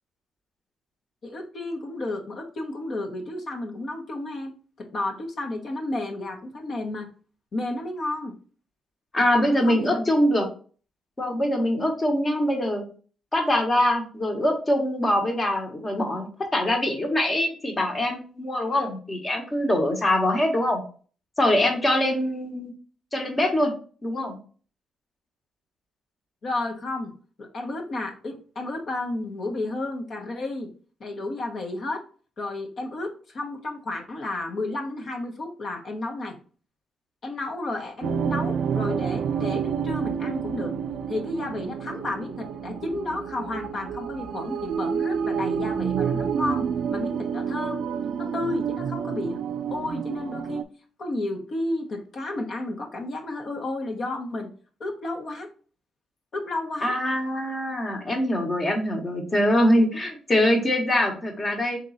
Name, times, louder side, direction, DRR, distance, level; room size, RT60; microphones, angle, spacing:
voice 1, 1.2-4.5 4.8-7.1 7.5-8.3 9.3-10.1 26.4-27.1 27.4-30.7 31.0-32.0 32.4-36.4 37.2-40.7 41.1-47.8 48.2-49.4 49.7-50.6 51.0-54.5 54.8-55.5 56.3-56.9, left 2 dB, 50° left, 2 dB, 1.1 m, -32 dB
voice 2, 9.1-10.4 11.2-12.8 13.3-20.8 21.4-22.7 23.1-23.7 24.0-24.4 56.8-61.8, left 1 dB, 25° left, 3 dB, 1.2 m, -23 dB
sound 1, 38.0-50.6, right 7 dB, 65° right, 0.3 m, -29 dB
3.7 x 3.0 x 4.1 m, 0.41 s
cardioid pair, 90°, 0 cm